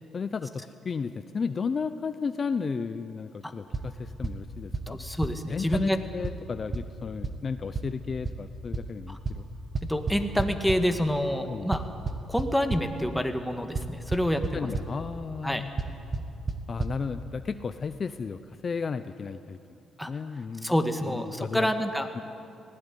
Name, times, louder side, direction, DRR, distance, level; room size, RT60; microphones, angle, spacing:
voice 1, 0.1-5.0 5.5-9.5 11.5-11.7 14.5-15.7 16.7-19.6 20.1-20.8 21.0-21.7 22.1-22.2, left 5 dB, 40° left, 11 dB, 0.7 m, -33 dB
sound 1, 3.7-3.8 4.2-4.3 4.7-4.8 5.2-5.3 5.7-5.8 6.2-6.3 6.7-6.8 7.2-7.3 7.7-7.8 8.2-8.3 8.7-8.8 9.2-9.3 9.7-10.7 11.7-12.8 13.7-13.8 14.1-14.5 14.7-14.8 15.8-16.2 16.5-16.6 16.8-16.9, right 3 dB, 35° right, 1.7 m, -28 dB
voice 2, 4.9-6.0 9.1-9.2 9.8-11.8 12.3-14.7 15.4-15.6 20.0-20.1 20.6-22.1, equal, 5° left, 6 dB, 1.7 m, -27 dB
19.5 x 17.0 x 9.9 m, 2.6 s
cardioid pair, 90°, 0 cm